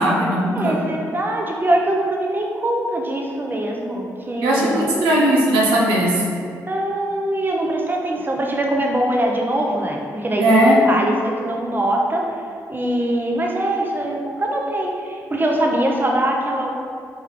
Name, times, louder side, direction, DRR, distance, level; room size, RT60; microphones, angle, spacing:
voice 1, 0.0-0.8 4.4-6.2 10.4-10.8, right 1 dB, 80° right, -4 dB, 0.6 m, -17 dB
voice 2, 0.5-4.9 5.3-5.5 6.7-12.3 12.7-16.7, right 1 dB, 25° right, 0 dB, 0.8 m, -22 dB
4.4 x 3.3 x 3.6 m, 2.3 s
hypercardioid pair, 40°, 9 cm